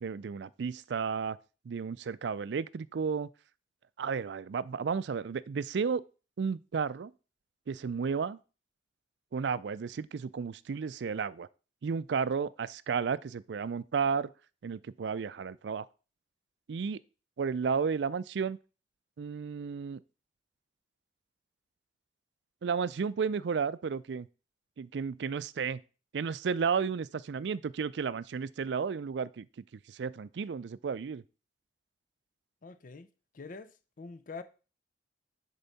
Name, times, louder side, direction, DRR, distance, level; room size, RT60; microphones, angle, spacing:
voice 1, 0.0-1.4 1.7-3.3 4.0-6.0 6.4-7.1 7.7-8.4 9.3-11.5 11.8-14.3 14.6-15.9 16.7-17.0 17.4-18.6 19.2-20.0 22.6-24.3 24.8-25.8 26.1-29.5 29.9-31.2, right 6 dB, 70° right, 0.4 m, -33 dB
voice 2, 32.6-33.1 33.3-33.7 34.0-34.4, left 4 dB, 50° left, 0.5 m, -44 dB
10.0 x 4.6 x 4.1 m
head